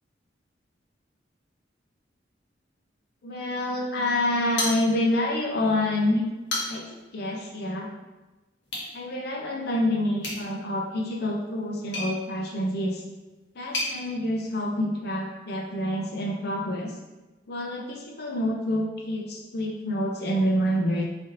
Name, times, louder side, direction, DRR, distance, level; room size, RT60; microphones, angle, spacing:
voice 1, 3.2-6.2 6.7-7.9 8.9-13.0 13.5-16.9 17.5-21.0, left 1 dB, 60° left, 0 dB, 0.6 m, -27 dB
sound 1, 4.5-5.3 5.7-5.8 6.3-7.0 8.6-8.9 10.2-13.9, left 1 dB, 75° left, 1.1 m, -34 dB
3.4 x 2.6 x 3.9 m, 1.1 s
head